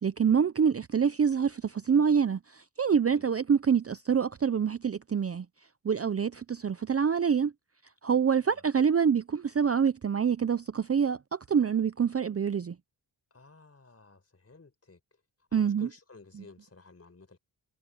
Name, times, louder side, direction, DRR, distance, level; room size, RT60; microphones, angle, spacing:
voice 1, 0.0-5.5 5.8-7.5 8.0-12.8 15.5-15.9, right 7 dB, 30° right, 0.6 m, -26 dB
voice 2, 13.3-15.0 15.5-17.4, left 3 dB, 30° left, 4.5 m, -53 dB
cardioid pair, 70°, 45 cm